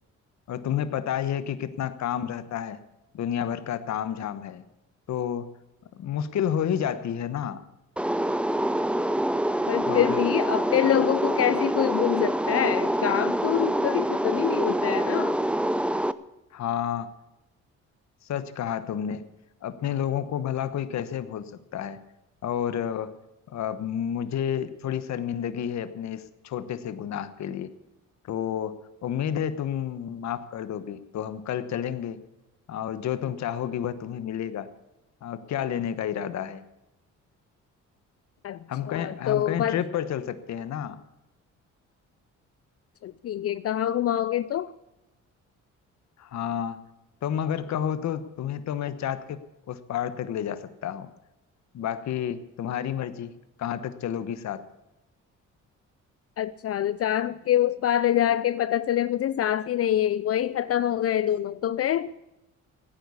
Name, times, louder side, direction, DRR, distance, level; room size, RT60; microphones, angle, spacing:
voice 1, 0.5-2.8 3.1-4.6 5.1-5.5 6.0-7.6 9.9-10.2 10.8-10.9 16.5-17.1 18.2-19.3 19.6-22.0 22.4-23.1 23.5-27.7 28.2-32.2 32.7-34.7 35.2-36.6 38.7-41.0 46.2-46.8 47.2-51.1 51.7-53.3 53.6-54.6, left 9 dB, 65° left, 13 dB, 1.1 m, -30 dB
sound 1, 8.0-16.1, right 1 dB, 5° right, 0.6 m, -26 dB
voice 2, 9.7-15.4 38.4-38.6 38.9-39.8 43.0-44.7 56.4-62.1, left 11 dB, 50° left, 16 dB, 0.5 m, -25 dB
16.5 x 9.7 x 7.0 m, 0.96 s
cardioid pair, 90°, 30 cm